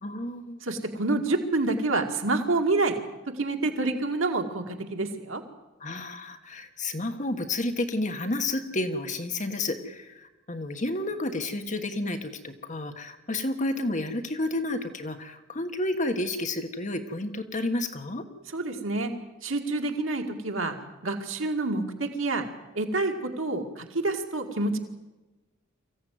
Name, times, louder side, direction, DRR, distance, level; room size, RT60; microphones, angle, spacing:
voice 1, 0.0-0.6 5.8-18.2, left 2 dB, 35° left, 6 dB, 1.4 m, -31 dB
voice 2, 0.6-3.0 3.3-5.4 18.5-19.1 19.4-20.8 21.0-22.5 22.7-24.8, right 2 dB, 70° right, 4 dB, 2.2 m, -28 dB
24.5 x 15.5 x 9.4 m, 1.1 s
head